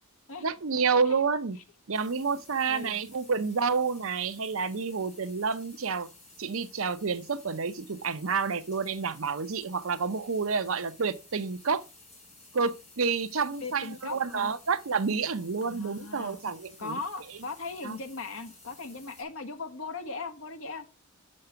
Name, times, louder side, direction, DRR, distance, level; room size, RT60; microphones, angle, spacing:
voice 1, 0.4-1.6 1.9-6.1 6.4-11.8 12.5-17.0 17.8-18.0, right 5 dB, 65° right, 0.7 m, -29 dB
sound 1, 1.9-19.2, left 3 dB, 35° left, 5.0 m, -54 dB
voice 2, 2.6-3.0 13.6-14.5 15.6-16.4 16.8-20.8, left 3 dB, 70° left, 1.3 m, -38 dB
6.6 x 6.5 x 5.8 m
head